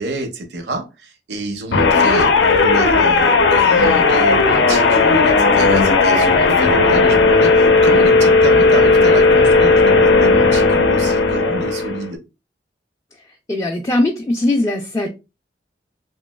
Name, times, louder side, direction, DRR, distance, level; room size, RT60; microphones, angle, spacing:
voice 1, 0.0-2.3 2.6-12.2, right 2 dB, 70° right, 0.6 m, -28 dB
sound 1, 1.7-12.1, left 3 dB, 75° left, 0.5 m, -14 dB
voice 2, 13.5-15.1, left 1 dB, 20° left, 0.3 m, -19 dB
3.0 x 2.6 x 2.2 m
head